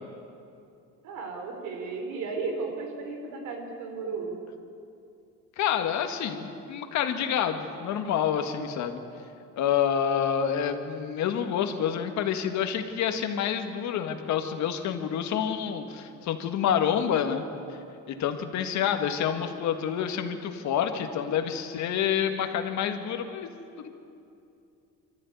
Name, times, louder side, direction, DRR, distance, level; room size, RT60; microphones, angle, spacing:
voice 1, 1.0-4.4, right 4 dB, 70° right, 3 dB, 4.0 m, -34 dB
voice 2, 5.6-9.0 9.6-17.4 18.1-23.5 23.8-24.0, left 8 dB, 60° left, 6 dB, 1.8 m, -28 dB
25.5 x 13.5 x 9.4 m, 2.6 s
cardioid pair, 175°, 32 cm